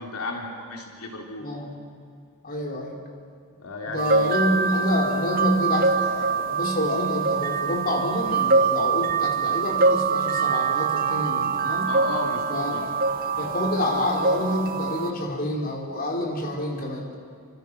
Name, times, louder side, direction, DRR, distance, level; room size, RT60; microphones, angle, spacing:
voice 1, 0.0-1.4 3.6-4.4 11.9-12.8, left 2 dB, 85° left, 1 dB, 3.4 m, -33 dB
voice 2, 1.4-1.8 2.4-3.0 3.9-11.9 12.5-13.0 13.4-17.1, left 1 dB, 45° left, 0 dB, 4.5 m, -27 dB
sound 1, 4.0-15.1, right 4 dB, 45° right, 1.1 m, -24 dB
Wind instrument woodwind instrument, 10.4-14.9, right 4 dB, 10° right, 2.3 m, -44 dB
28.5 x 26.0 x 6.3 m, 2.3 s
head